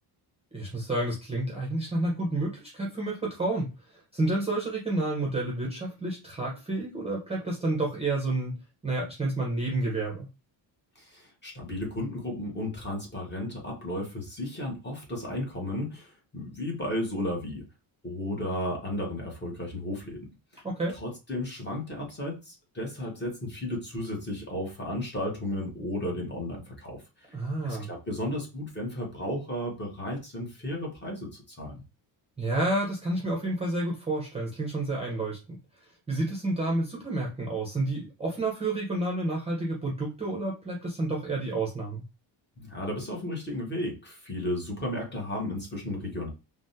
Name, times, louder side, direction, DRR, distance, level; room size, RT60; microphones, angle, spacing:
voice 1, 0.5-3.7 4.1-8.6 8.8-10.3 20.6-21.0 27.3-27.9 32.4-35.4 36.1-42.0, right 2 dB, 15° right, -3 dB, 0.6 m, -30 dB
voice 2, 11.0-17.6 18.0-20.3 20.5-20.6 20.9-27.3 27.6-31.8 42.6-46.3, left 1 dB, 20° left, 0 dB, 1.0 m, -34 dB
3.4 x 2.1 x 2.7 m, 0.28 s
cardioid pair, 155°, 48 cm